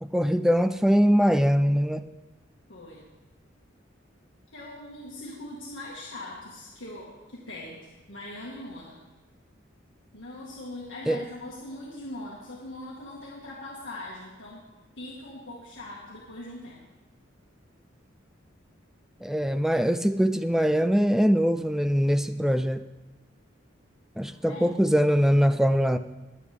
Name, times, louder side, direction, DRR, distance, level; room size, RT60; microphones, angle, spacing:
voice 1, 0.0-2.0 11.1-11.2 19.2-22.8 24.2-26.0, equal, ahead, 11 dB, 0.4 m, -22 dB
voice 2, 2.7-3.0 4.5-7.8 8.1-9.0 10.1-14.6 15.0-16.8 24.2-24.8, left 1 dB, 70° left, -4 dB, 2.0 m, -41 dB
23.0 x 8.1 x 3.6 m, 1.1 s
head